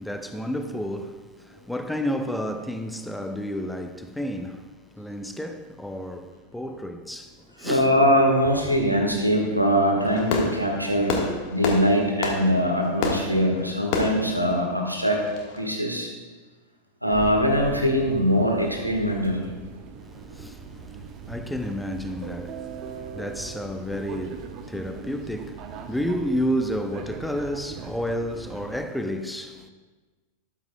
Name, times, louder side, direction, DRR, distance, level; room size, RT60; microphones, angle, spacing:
voice 1, 0.0-7.9 11.3-11.4 20.0-29.7, equal, 5° left, 0.6 m, -31 dB
voice 2, 7.6-11.2 11.5-15.3 15.5-16.1 17.0-19.4, equal, 90° right, 1.7 m, -22 dB
Fireworks, 10.0-15.6, left 4 dB, 45° left, 1.5 m, -30 dB
sound 1, 17.1-28.9, right 6 dB, 40° right, 0.9 m, -40 dB
13.0 x 12.0 x 2.3 m
figure-of-eight pair, 90°, 0 cm